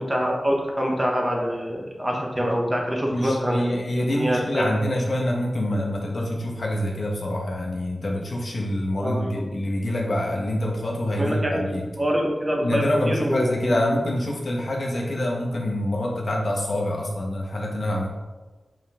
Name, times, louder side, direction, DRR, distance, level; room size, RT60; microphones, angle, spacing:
voice 1, 0.0-3.8 4.1-4.6 9.0-9.5 11.2-11.7 12.0-13.8, equal, 20° right, -1 dB, 1.3 m, -25 dB
voice 2, 3.1-11.9 12.6-18.1, left 1 dB, 60° left, -1 dB, 1.3 m, -26 dB
5.5 x 5.4 x 3.8 m, 1.2 s
wide cardioid pair, 65°, 0 cm